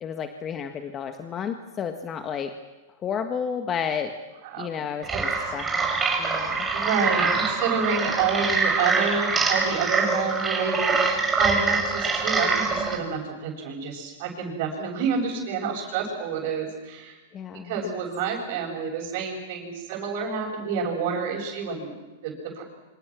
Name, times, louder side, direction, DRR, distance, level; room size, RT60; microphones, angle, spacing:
voice 1, 0.0-2.5 3.0-4.1 4.6-5.9 6.2-6.7 17.3-17.8, left 7 dB, 25° left, 6 dB, 1.7 m, -31 dB
sound 1, 5.0-13.0, right 4 dB, 15° right, 5.9 m, -24 dB
voice 2, 6.1-17.2 17.6-21.9 22.2-22.6, right 5 dB, 55° right, -4 dB, 6.9 m, -29 dB
27.5 x 26.0 x 6.3 m, 1.1 s
hypercardioid pair, 120°, 0 cm